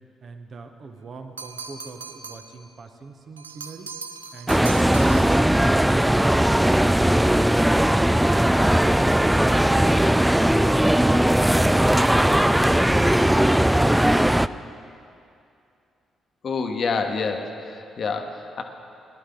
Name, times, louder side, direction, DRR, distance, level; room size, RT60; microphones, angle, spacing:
voice 1, 0.2-3.9 12.6-13.6, right 4 dB, 50° right, 6 dB, 1.0 m, -42 dB
sound 1, 1.4-2.6 3.4-5.6, right 5 dB, 90° right, 0.3 m, -38 dB
sound 2, 4.5-14.5, right 1 dB, 5° right, 0.3 m, -18 dB
voice 2, 16.4-18.6, left 4 dB, 50° left, 5 dB, 1.1 m, -28 dB
18.5 x 11.5 x 3.9 m, 2.5 s
figure-of-eight pair, 40°, 0 cm